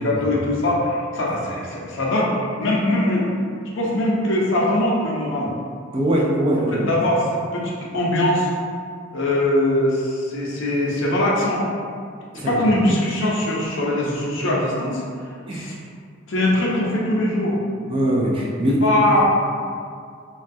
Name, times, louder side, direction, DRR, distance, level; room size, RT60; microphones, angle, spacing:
voice 1, 0.0-2.3 2.6-3.2 3.7-5.5 6.7-8.5 9.1-11.6 12.3-15.0 15.5-15.8 16.3-17.6 18.8-19.2, left 1 dB, 70° left, -4 dB, 0.6 m, -21 dB
voice 2, 5.9-6.9 12.3-12.6 15.5-15.7 17.9-18.9, right 1 dB, 25° right, -3 dB, 0.3 m, -21 dB
3.0 x 2.3 x 2.6 m, 2.2 s
head